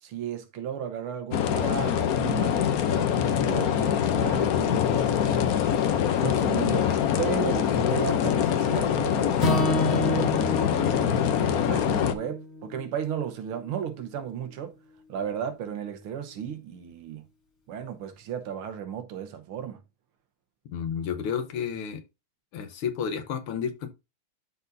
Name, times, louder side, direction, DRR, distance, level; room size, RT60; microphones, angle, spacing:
voice 1, 0.0-5.6 6.2-10.7 11.5-14.8 15.1-17.3 17.7-19.8, right 8 dB, 80° right, 1.9 m, -35 dB
sound 1, 1.3-12.1, left 9 dB, 70° left, 0.9 m, -24 dB
Acoustic guitar / Strum, 9.4-13.7, left 1 dB, 35° left, 2.1 m, -30 dB
voice 2, 20.7-22.0 22.5-23.9, left 7 dB, 90° left, 1.9 m, -31 dB
12.0 x 4.1 x 2.6 m
omnidirectional pair, 2.3 m